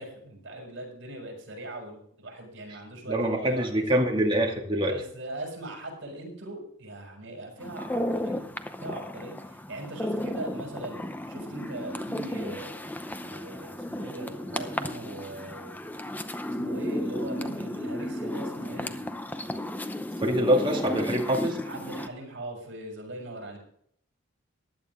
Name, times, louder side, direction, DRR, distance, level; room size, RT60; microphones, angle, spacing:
voice 1, 0.0-4.1 4.9-8.5 8.8-11.0 11.3-12.9 13.2-15.7 16.4-18.9 21.6-23.6, right 1 dB, 60° right, 1 dB, 6.2 m, -40 dB
voice 2, 3.1-4.9 20.2-21.6, right 1 dB, 25° right, 0 dB, 2.3 m, -25 dB
sound 1, 7.6-22.1, left 1 dB, 10° left, 0.7 m, -34 dB
15.5 x 11.0 x 3.7 m, 0.66 s
head